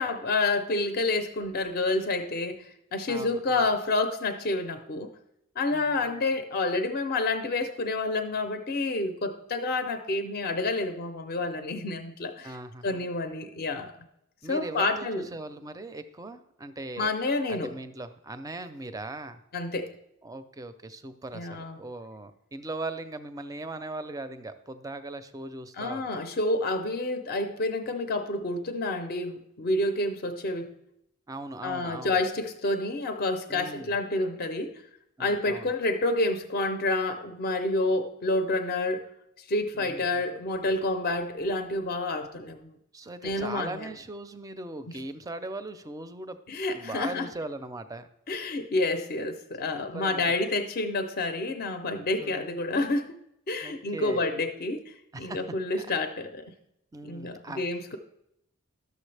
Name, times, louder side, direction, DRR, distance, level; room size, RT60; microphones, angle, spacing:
voice 1, 0.0-5.1 5.6-12.6 12.8-13.9 14.5-15.3 17.0-17.7 19.5-19.9 21.3-21.8 25.8-30.7 31.6-34.8 35.2-39.0 39.4-42.7 43.2-43.9 46.5-47.3 48.3-53.2 53.5-56.5 57.0-58.0, left 2 dB, 45° left, 7 dB, 0.5 m, -29 dB
voice 2, 3.1-3.7 5.7-6.2 12.4-13.0 14.4-17.1 17.5-19.4 20.2-26.1 31.3-32.2 33.5-33.9 35.2-35.7 39.7-40.0 42.9-46.4 46.7-48.1 49.7-50.4 52.2-52.6 53.6-54.3 55.1-55.4 55.7-55.9 56.9-57.6, right 2 dB, 15° right, 11 dB, 0.4 m, -39 dB
12.0 x 6.7 x 3.3 m, 0.80 s
head